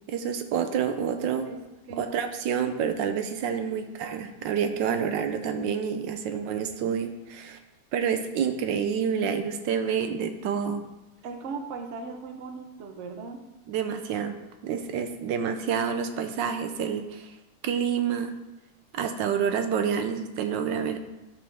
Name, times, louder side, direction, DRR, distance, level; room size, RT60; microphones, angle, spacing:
voice 1, 0.1-1.5 2.0-7.6 7.9-10.8 13.7-14.4 14.6-17.3 17.6-18.4 18.9-21.0, right 7 dB, 85° right, 7 dB, 1.4 m, -28 dB
voice 2, 1.5-2.1 3.7-4.1 11.2-13.4 20.0-20.1, right 4 dB, 55° right, 5 dB, 0.9 m, -39 dB
11.5 x 5.4 x 3.5 m, 1.0 s
omnidirectional pair, 1.9 m